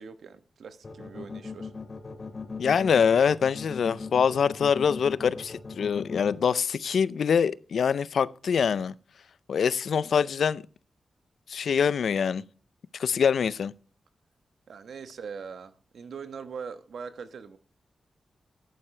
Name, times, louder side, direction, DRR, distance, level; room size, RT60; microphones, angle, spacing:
voice 1, 0.0-1.7 14.7-17.6, right 6 dB, 80° right, 1.1 m, -41 dB
sound 1, 0.8-6.3, left 4 dB, 45° left, 2.2 m, -38 dB
voice 2, 2.6-8.9 9.5-10.6 11.5-12.4 13.0-13.7, left 7 dB, 80° left, 0.5 m, -24 dB
11.0 x 9.2 x 3.3 m
wide cardioid pair, 90°, 0 cm